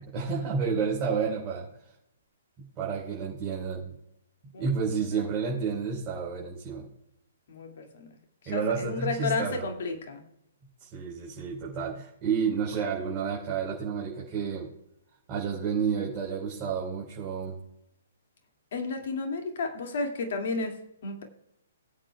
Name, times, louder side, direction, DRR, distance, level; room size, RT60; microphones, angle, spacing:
voice 1, 0.0-1.7 2.6-4.0 4.6-6.9 8.5-9.7 10.8-14.7 15.3-17.6, right 6 dB, 30° right, -6 dB, 4.1 m, -30 dB
voice 2, 7.5-8.1 8.5-10.2 18.7-21.2, left 3 dB, 55° left, 3 dB, 2.3 m, -32 dB
21.0 x 8.5 x 2.3 m, 0.81 s
figure-of-eight pair, 125°, 0 cm